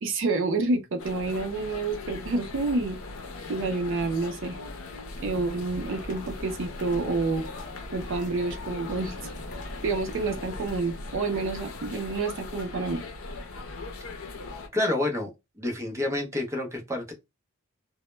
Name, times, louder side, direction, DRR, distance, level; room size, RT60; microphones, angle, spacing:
voice 1, 0.0-3.0 3.5-4.6 5.2-7.4 7.9-9.2 9.8-13.0, right 3 dB, 65° right, 0.5 m, -28 dB
sound 1, 1.0-14.7, left 3 dB, 80° left, 0.6 m, -40 dB
sound 2, 5.1-10.7, equal, 35° left, 0.5 m, -43 dB
voice 2, 14.7-15.3 15.6-17.1, left 2 dB, 15° right, 0.6 m, -28 dB
2.1 x 2.0 x 3.1 m
head